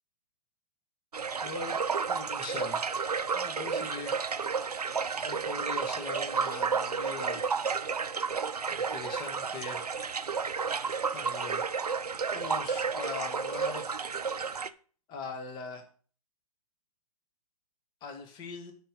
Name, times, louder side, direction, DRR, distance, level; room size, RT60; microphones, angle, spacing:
sound 1, 1.1-14.7, right 5 dB, 80° right, 0.6 m, -32 dB
voice 1, 1.4-3.0 3.3-4.3 5.2-7.6 8.7-9.8 11.1-11.6 12.3-14.0 15.1-15.8 18.0-18.7, left 4 dB, 25° left, 5 dB, 1.5 m, -41 dB
7.5 x 5.3 x 6.4 m, 0.42 s
figure-of-eight pair, 125°, 19 cm